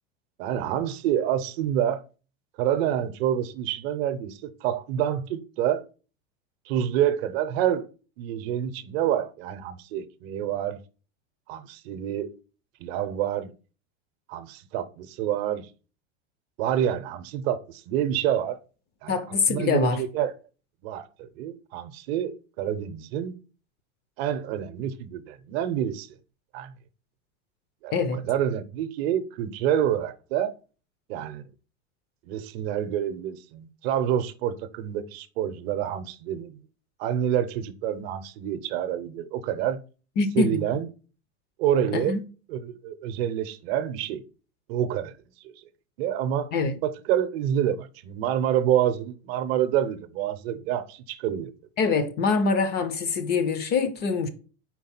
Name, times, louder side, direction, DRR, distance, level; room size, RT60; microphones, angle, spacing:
voice 1, 0.4-2.0 2.6-5.8 6.7-7.8 8.2-10.8 11.5-12.3 12.8-13.5 14.3-15.7 16.6-18.6 19.0-19.1 19.5-20.3 20.8-23.3 24.2-26.1 26.5-26.7 27.8-30.5 31.1-31.4 32.3-36.6 37.0-39.8 40.4-40.9 41.6-42.2 42.5-44.2 44.7-45.1 45.4-45.5 46.0-46.5 46.8-51.5, right 10 dB, 55° right, 0.7 m, -27 dB
voice 2, 19.1-20.0 27.9-28.3 40.2-40.6 41.9-42.2 46.5-46.7 51.8-54.3, left 4 dB, 30° left, 0.5 m, -24 dB
4.7 x 3.7 x 5.7 m
supercardioid pair, 145°, 36 cm